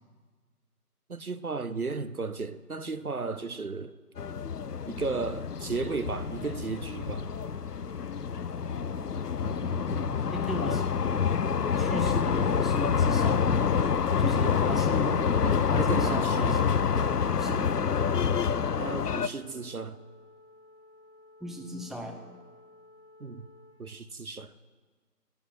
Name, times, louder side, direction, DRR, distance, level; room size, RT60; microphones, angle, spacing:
voice 1, 1.1-3.9 4.9-7.3 15.4-16.7 18.8-20.0 23.2-23.5 23.8-24.5, right 4 dB, 65° right, 0.7 m, -34 dB
sound 1, 4.2-19.3, left 6 dB, 75° left, 0.6 m, -27 dB
sound 2, 5.9-23.7, left 2 dB, 25° left, 2.5 m, -55 dB
voice 2, 9.3-10.9 11.8-13.7 14.2-15.2 15.7-16.9 17.4-17.8 21.4-22.4, equal, ahead, 0.6 m, -37 dB
9.9 x 8.7 x 9.6 m
figure-of-eight pair, 175°, 47 cm